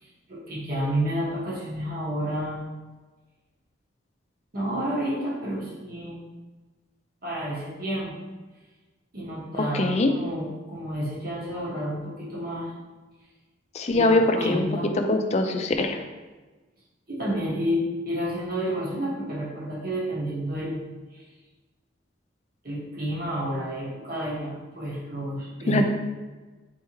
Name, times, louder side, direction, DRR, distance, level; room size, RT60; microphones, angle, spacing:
voice 1, 0.0-2.6 4.5-6.2 7.2-8.1 9.1-12.7 13.9-14.1 14.3-14.9 17.1-20.8 21.1-21.2 22.6-25.9, equal, 50° right, -6 dB, 1.2 m, -30 dB
voice 2, 9.7-10.1 13.7-14.6 15.1-16.0 25.7-25.9, left 2 dB, 35° left, 5 dB, 0.3 m, -22 dB
4.4 x 3.4 x 3.0 m, 1.2 s
head